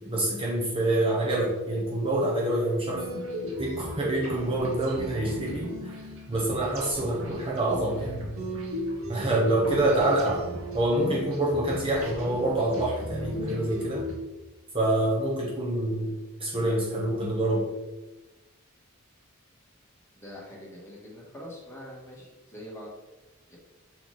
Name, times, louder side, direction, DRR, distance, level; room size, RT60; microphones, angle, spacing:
voice 1, 0.0-3.1 3.6-6.0 6.3-8.3 9.1-10.4 10.7-14.1 14.7-17.7, right 1 dB, 25° right, -3 dB, 0.9 m, -26 dB
sound 1, 2.9-14.1, equal, 75° right, 1.4 m, -37 dB
voice 2, 9.8-10.2 20.1-23.0 23.5-23.6, left 1 dB, 10° left, -4 dB, 1.7 m, -43 dB
6.3 x 4.3 x 4.0 m, 1.1 s
head